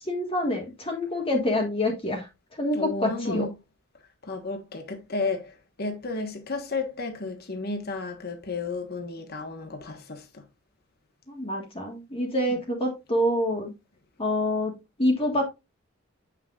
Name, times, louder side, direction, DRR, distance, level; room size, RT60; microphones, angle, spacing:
voice 1, 0.0-3.5 11.3-13.7 14.2-14.7 15.0-15.5, left 1 dB, 25° left, 1.5 m, -27 dB
voice 2, 2.7-3.5 4.2-10.4, left 3 dB, 45° left, 1.4 m, -32 dB
8.6 x 6.0 x 2.4 m
head